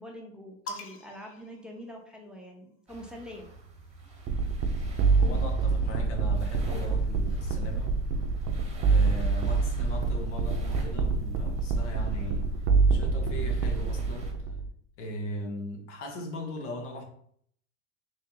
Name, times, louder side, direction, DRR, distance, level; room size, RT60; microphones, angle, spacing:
voice 1, 0.0-3.5, equal, 5° right, 0.6 m, -44 dB
sound 1, 0.7-2.5 3.6-5.2, left 2 dB, 40° left, 0.8 m, -46 dB
sound 2, 2.9-14.3, right 1 dB, 20° right, 1.0 m, -49 dB
sound 3, 4.3-14.7, right 4 dB, 45° right, 0.6 m, -26 dB
voice 2, 5.1-7.9 8.8-12.5 12.9-14.5 15.0-17.0, equal, 90° left, 1.0 m, -38 dB
3.2 x 2.7 x 3.7 m
supercardioid pair, 100°, 34 cm